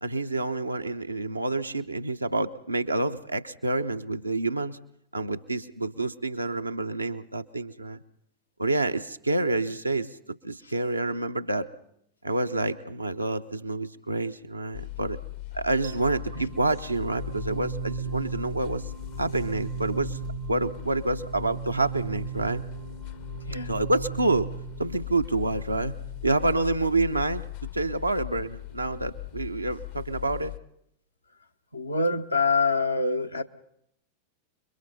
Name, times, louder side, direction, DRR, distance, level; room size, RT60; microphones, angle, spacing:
voice 1, 0.0-4.8 5.1-8.0 8.6-11.7 12.2-15.2 15.5-18.8 19.2-20.2 20.5-22.6 23.7-24.5 24.8-25.9 26.2-27.5 27.7-30.5, right 2 dB, 85° right, 0.7 m, -28 dB
sound 1, 14.7-30.6, left 18 dB, 50° left, 0.7 m, -39 dB
sound 2, 15.8-26.8, right 12 dB, 50° right, 0.8 m, -39 dB
voice 2, 31.7-33.4, left 3 dB, 85° left, 1.0 m, -25 dB
30.0 x 22.0 x 4.1 m
figure-of-eight pair, 90°, 0 cm